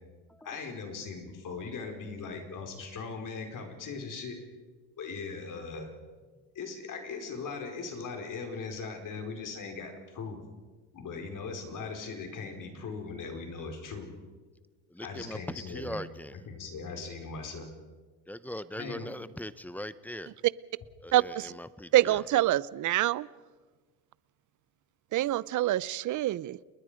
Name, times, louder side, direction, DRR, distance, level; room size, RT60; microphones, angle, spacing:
voice 1, 0.4-4.4 5.0-5.9 6.5-10.4 10.9-14.1 15.0-16.0 16.3-17.7 18.7-19.1, left 4 dB, 45° left, 3 dB, 4.8 m, -39 dB
voice 2, 14.9-16.4 18.3-20.3 21.0-22.2, left 1 dB, 5° left, 15 dB, 0.6 m, -40 dB
voice 3, 21.1-21.5 21.9-23.3 25.1-26.6, right 14 dB, 45° right, 21 dB, 0.6 m, -26 dB
30.0 x 20.5 x 5.1 m, 1.4 s
cardioid pair, 115°, 43 cm